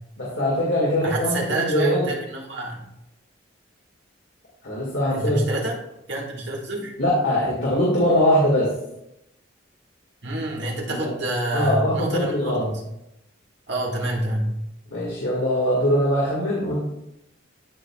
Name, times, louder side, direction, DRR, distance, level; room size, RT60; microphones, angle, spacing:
voice 1, 0.2-2.1 4.6-5.4 7.0-8.7 10.9-11.1 11.5-12.7 14.9-16.8, equal, 70° left, -6 dB, 1.9 m, -22 dB
voice 2, 1.0-2.8 5.1-5.8 6.1-6.9 10.2-12.8 13.7-14.6, right 1 dB, 60° right, -1 dB, 1.7 m, -27 dB
13.0 x 4.7 x 2.3 m, 0.85 s
head